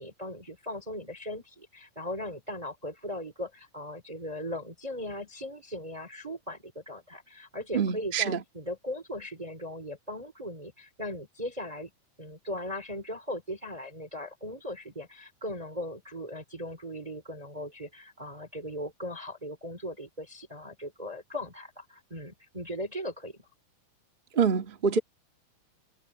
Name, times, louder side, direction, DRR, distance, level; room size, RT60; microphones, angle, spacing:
voice 1, 0.0-11.9 12.2-23.5, left 1 dB, 10° right, 2.1 m, -38 dB
voice 2, 7.7-8.4 24.3-25.0, right 6 dB, 45° right, 0.6 m, -26 dB
omnidirectional pair, 4.3 m